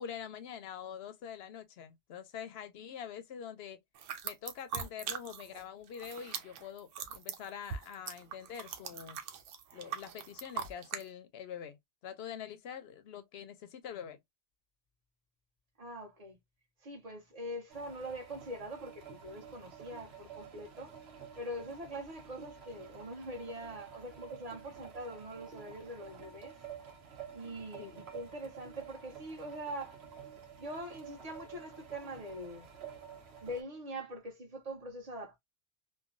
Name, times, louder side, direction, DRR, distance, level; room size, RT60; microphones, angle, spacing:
voice 1, 0.0-3.8 4.2-9.2 9.7-14.2 27.8-28.1, left 8 dB, 65° left, 0.7 m, -45 dB
sound 1, 4.0-5.6 5.9-11.0, right 7 dB, 90° right, 0.9 m, -41 dB
voice 2, 15.8-16.4 16.8-20.9 21.4-26.5 27.3-30.0 30.6-32.7 33.4-35.4, right 1 dB, 35° right, 1.0 m, -43 dB
sound 2, 17.7-33.6, right 7 dB, 65° right, 1.0 m, -50 dB
2.9 x 2.2 x 2.4 m
omnidirectional pair, 1.2 m